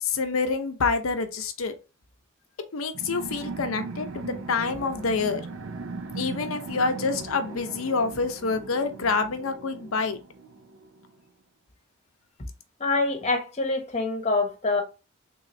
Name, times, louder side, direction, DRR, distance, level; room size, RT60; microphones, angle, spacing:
voice 1, 0.0-1.8 2.7-5.4 6.1-10.2, left 4 dB, 75° left, 0.6 m, -27 dB
sound 1, 2.9-11.1, right 3 dB, 65° right, 0.5 m, -38 dB
voice 2, 12.8-14.8, left 3 dB, 30° left, 0.9 m, -25 dB
3.6 x 3.1 x 2.6 m
head